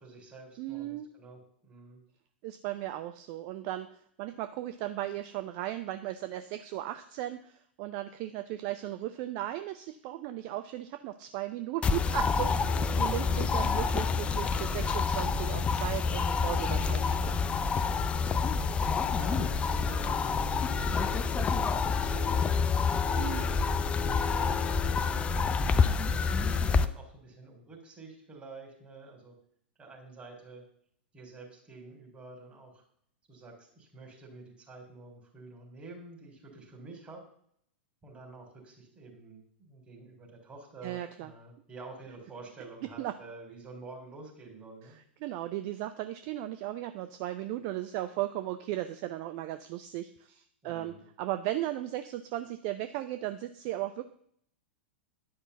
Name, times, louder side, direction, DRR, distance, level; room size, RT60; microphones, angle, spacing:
voice 1, 0.0-2.0 12.7-13.1 19.1-23.2 24.1-29.3 29.8-30.6 31.1-32.8 33.3-37.2 38.0-45.0 50.6-51.0, right 3 dB, 20° right, 0 dB, 3.8 m, -49 dB
voice 2, 0.6-1.1 2.4-17.4 23.2-23.5 40.8-41.3 43.0-43.1 44.8-54.0, right 14 dB, 40° right, 10 dB, 0.6 m, -36 dB
sound 1, 11.8-26.9, left 5 dB, 20° left, 0.5 m, -28 dB
10.5 x 5.6 x 6.9 m, 0.66 s
figure-of-eight pair, 100°, 6 cm